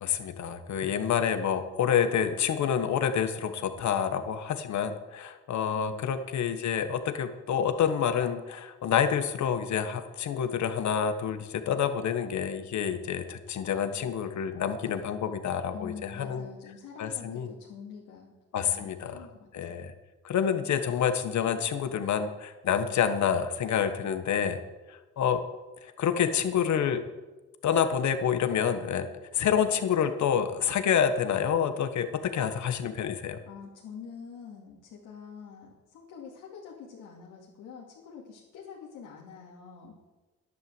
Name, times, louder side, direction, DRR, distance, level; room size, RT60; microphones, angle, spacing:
voice 1, 0.0-16.5 17.0-17.5 18.5-19.3 19.5-19.9 20.2-24.6 24.9-25.4 25.8-27.0 27.6-33.4, left 8 dB, 70° left, 9 dB, 1.5 m, -28 dB
voice 2, 5.7-6.1 15.7-18.3 18.6-19.8 33.5-40.0, left 6 dB, 90° left, -4 dB, 2.6 m, -46 dB
11.5 x 10.5 x 7.9 m, 1.2 s
cardioid pair, 90°, 30 cm